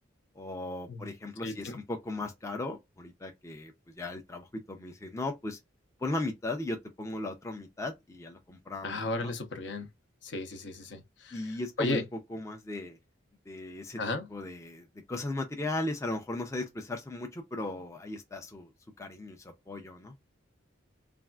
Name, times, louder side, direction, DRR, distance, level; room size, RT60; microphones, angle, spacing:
voice 1, 0.4-5.6 6.0-9.3 11.3-12.0 12.3-13.0 13.5-14.0 14.3-18.7 19.0-20.1, left 2 dB, 15° left, 0.4 m, -37 dB
voice 2, 1.4-1.8 8.8-9.9 10.2-12.0 14.0-14.3, left 2 dB, 65° left, 0.7 m, -34 dB
3.4 x 2.4 x 2.2 m
head